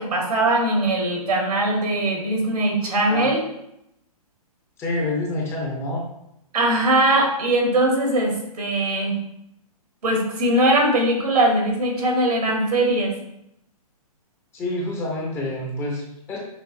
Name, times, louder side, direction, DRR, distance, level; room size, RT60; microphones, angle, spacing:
voice 1, 0.0-3.5 6.5-9.2 10.0-13.1, right 1 dB, 90° right, 0 dB, 1.4 m, -21 dB
voice 2, 2.8-3.3 4.8-6.0 14.5-16.4, left 2 dB, 15° left, -1 dB, 0.5 m, -28 dB
5.7 x 2.5 x 2.6 m, 0.80 s
hypercardioid pair, 150°, 19 cm